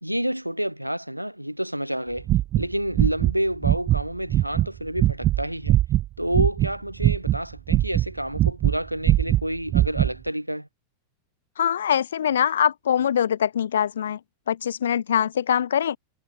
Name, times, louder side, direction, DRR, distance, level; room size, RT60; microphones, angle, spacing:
voice 1, 0.0-2.3 2.5-5.8 6.2-10.7, equal, 90° right, 1.3 m, -29 dB
sound 1, 2.2-3.3 3.6-4.0 4.3-6.7 7.0-8.8 9.0-10.1, right 14 dB, 35° right, 0.3 m, -21 dB
voice 2, 11.6-14.2 14.5-16.0, left 9 dB, 65° left, 0.3 m, -23 dB
figure-of-eight pair, 90°, 0 cm